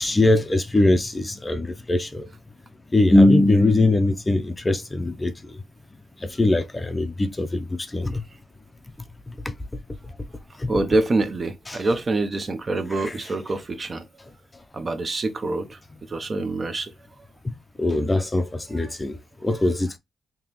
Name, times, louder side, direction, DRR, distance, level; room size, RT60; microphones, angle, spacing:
voice 1, 0.0-2.2 2.9-5.3 6.2-8.2 9.5-9.6 10.6-10.7 11.7-11.8 13.0-13.1 17.8-19.2 19.4-20.0, left 2 dB, 20° left, 0.5 m, -21 dB
voice 2, 10.7-14.1 14.7-15.8 16.1-16.9 18.8-18.9, right 2 dB, 35° right, 0.6 m, -25 dB
3.6 x 2.9 x 2.9 m
cardioid pair, 90°, 0 cm